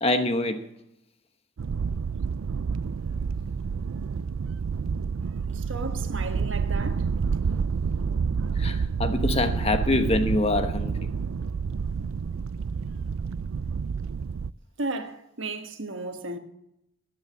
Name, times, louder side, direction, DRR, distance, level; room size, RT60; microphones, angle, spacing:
voice 1, 0.0-0.6 8.5-11.1, left 2 dB, 30° left, 1.1 m, -25 dB
sound 1, 1.6-14.5, right 5 dB, 90° right, 0.4 m, -29 dB
voice 2, 5.5-7.1 14.8-16.4, right 2 dB, 70° right, 1.5 m, -34 dB
15.0 x 9.7 x 7.3 m
head